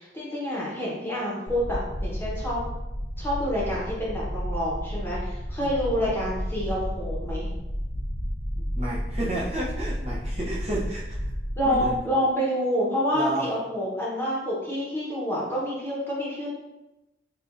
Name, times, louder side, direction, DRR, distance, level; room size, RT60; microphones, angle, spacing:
voice 1, 0.0-2.6 3.2-7.5 11.6-16.5, equal, 15° left, -6 dB, 1.0 m, -28 dB
sound 1, 1.5-12.0, equal, 45° left, 0.7 m, -32 dB
voice 2, 5.6-6.1 8.7-11.3 11.7-12.0 13.1-13.5, right 1 dB, 35° right, -6 dB, 0.6 m, -31 dB
4.9 x 2.4 x 2.5 m, 0.98 s
head